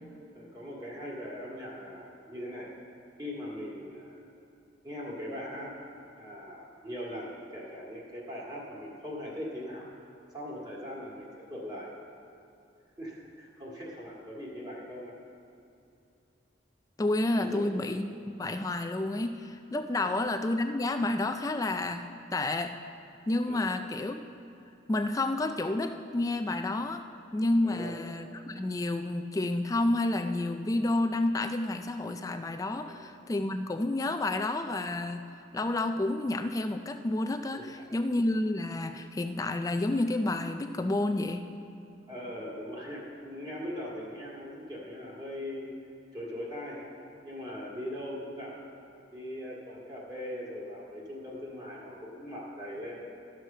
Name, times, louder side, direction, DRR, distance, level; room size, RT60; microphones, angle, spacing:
voice 1, 0.3-2.7 3.2-4.2 4.8-5.7 6.2-9.9 10.3-11.9 13.0-15.1 17.4-17.6 19.9-20.2 23.5-23.7 27.6-27.9 32.8-33.0 37.6-37.9 42.1-45.7 46.1-46.9 47.2-48.6 49.1-53.0, equal, 25° right, -5 dB, 1.9 m, -40 dB
voice 2, 17.0-22.8 23.3-24.2 24.9-27.0 27.3-35.2 35.5-41.5, left 2 dB, 20° left, 8 dB, 0.3 m, -30 dB
12.5 x 6.3 x 5.6 m, 2.7 s
head